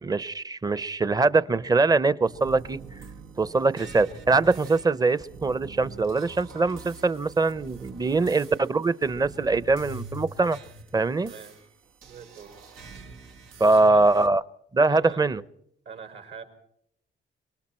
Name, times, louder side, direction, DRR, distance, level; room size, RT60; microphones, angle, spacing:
voice 1, 0.0-2.8 3.4-10.6 10.9-11.3 13.6-14.4 14.7-15.4, right 3 dB, 20° right, 17 dB, 0.7 m, -22 dB
sound 1, 2.3-14.3, right 3 dB, 90° right, 1.6 m, -45 dB
voice 2, 11.2-11.6 12.0-12.6 13.6-14.1 14.9-15.2 15.8-16.4, right 6 dB, 75° right, 4 dB, 5.8 m, -43 dB
25.5 x 23.0 x 4.4 m, 0.71 s
cardioid pair, 90°, 20 cm